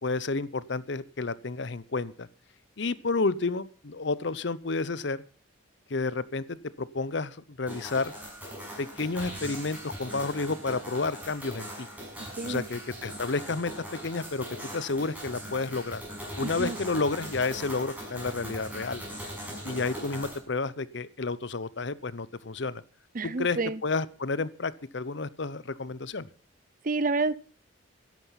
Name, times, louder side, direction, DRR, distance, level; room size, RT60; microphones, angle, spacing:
voice 1, 0.0-2.3 2.8-5.2 5.9-8.1 8.8-11.9 12.4-13.7 14.0-16.0 16.4-19.0 19.6-22.8 23.2-26.3, left 3 dB, 60° left, 0.7 m, -31 dB
sound 1, 7.7-20.4, equal, 10° right, 6.5 m, -40 dB
voice 2, 23.1-23.8 26.8-27.4, right 3 dB, 40° right, 0.6 m, -28 dB
13.5 x 10.5 x 5.8 m
head